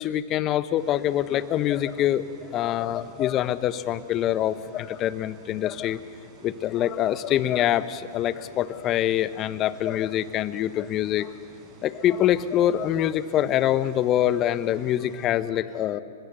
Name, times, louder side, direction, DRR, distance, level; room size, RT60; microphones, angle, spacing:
voice 1, 0.0-6.0 6.4-11.3 11.8-16.0, left 12 dB, 35° left, 14 dB, 1.1 m, -25 dB
sound 1, 0.8-15.3, right 5 dB, 35° right, 5.3 m, -52 dB
29.5 x 25.0 x 6.9 m, 2.6 s
hypercardioid pair, 110°, 0 cm